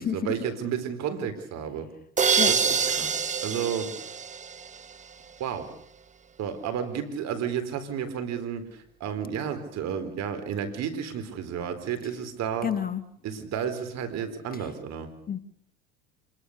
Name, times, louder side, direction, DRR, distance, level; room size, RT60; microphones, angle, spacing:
voice 1, 0.0-1.9 2.5-3.9 5.4-5.7 6.4-12.8 13.2-15.1, right 8 dB, 55° right, 9 dB, 4.1 m, -32 dB
sound 1, 2.2-5.0, right 6 dB, 25° right, 1.3 m, -26 dB
voice 2, 12.6-13.0 15.3-15.4, left 8 dB, 30° left, 10 dB, 1.7 m, -28 dB
26.5 x 21.0 x 6.6 m, 0.66 s
hypercardioid pair, 80°, 32 cm